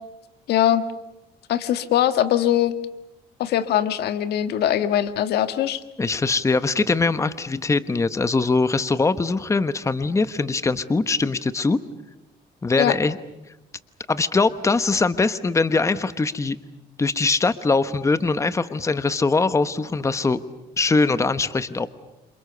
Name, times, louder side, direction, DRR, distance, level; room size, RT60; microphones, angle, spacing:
voice 1, 0.5-0.8 1.5-2.8 3.4-5.8 12.8-12.9, left 11 dB, 75° left, 10 dB, 1.7 m, -21 dB
voice 2, 6.0-11.8 12.6-13.2 14.1-16.6 17.0-20.4 20.8-21.9, left 3 dB, 15° left, 12 dB, 1.1 m, -22 dB
29.0 x 27.5 x 6.9 m, 0.90 s
cardioid pair, 110°, 17 cm